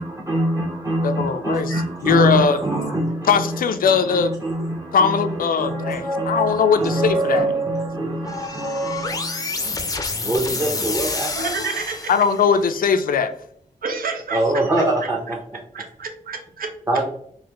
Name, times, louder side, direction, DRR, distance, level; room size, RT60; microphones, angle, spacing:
voice 1, 0.0-9.9 10.2-11.3 14.3-15.4 16.9-17.0, right 1 dB, 20° right, -2 dB, 0.6 m, -24 dB
voice 2, 1.0-1.8 2.0-2.6 3.3-4.3 4.9-7.5 12.1-13.4, left 6 dB, 85° left, 9 dB, 0.4 m, -19 dB
sound 1, 8.3-12.6, left 3 dB, 25° left, 0.4 m, -28 dB
voice 3, 11.3-12.1 13.8-14.6 15.7-16.7, right 4 dB, 90° right, 5 dB, 0.6 m, -29 dB
3.9 x 2.6 x 2.9 m, 0.66 s
wide cardioid pair, 105°, 14 cm